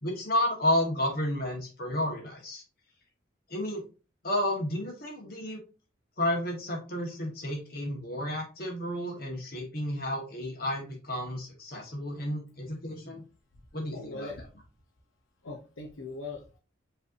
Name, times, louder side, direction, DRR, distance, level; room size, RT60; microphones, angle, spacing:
voice 1, 0.0-2.6 3.5-3.8 4.2-5.6 6.2-13.2 13.7-14.3, left 1 dB, 50° left, 0 dB, 1.4 m, -31 dB
voice 2, 13.9-14.4 15.4-16.6, left 3 dB, 85° left, 1 dB, 0.8 m, -40 dB
5.3 x 3.3 x 2.6 m, 0.32 s
head